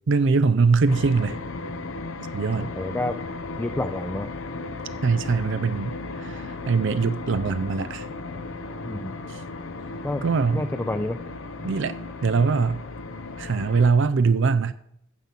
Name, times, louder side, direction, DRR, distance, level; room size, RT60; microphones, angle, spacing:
voice 1, 0.1-1.4 2.3-2.7 5.0-8.1 10.2-10.7 11.6-11.9 12.2-12.8 13.4-14.7, right 4 dB, 65° right, 13 dB, 0.5 m, -22 dB
sound 1, 0.9-13.9, left 3 dB, 80° left, 0.9 m, -35 dB
voice 2, 2.6-3.2 3.6-4.3 8.8-9.1 10.0-10.2 10.5-11.2, left 1 dB, 10° left, 7 dB, 0.4 m, -28 dB
9.4 x 7.0 x 7.4 m, 0.74 s
head